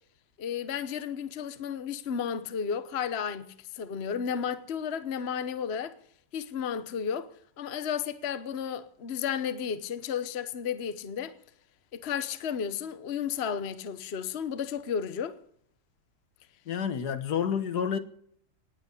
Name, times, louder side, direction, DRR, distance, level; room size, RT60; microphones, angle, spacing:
voice 1, 0.4-5.9 6.3-7.3 7.6-11.3 11.9-15.4, left 7 dB, 45° left, 1.1 m, -33 dB
voice 2, 16.7-18.0, left 7 dB, 65° left, 1.7 m, -29 dB
19.0 x 8.1 x 8.2 m
omnidirectional pair, 1.9 m